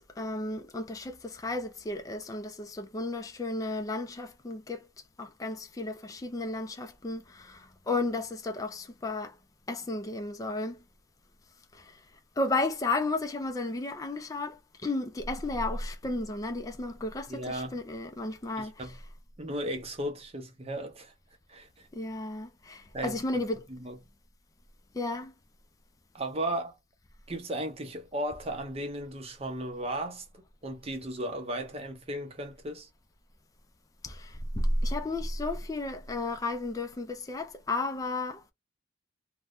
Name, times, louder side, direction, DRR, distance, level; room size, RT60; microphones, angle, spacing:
voice 1, 0.2-4.9 5.2-9.4 9.7-10.8 11.7-12.0 12.4-18.8 21.9-23.7 24.9-25.3 34.0-38.4, left 2 dB, 20° left, 0.4 m, -33 dB
voice 2, 17.3-17.8 18.6-19.0 19.4-21.1 21.5-21.9 22.9-23.2 23.7-24.0 26.1-26.8 27.3-32.9, right 1 dB, 30° right, 0.7 m, -35 dB
2.6 x 2.2 x 3.4 m
head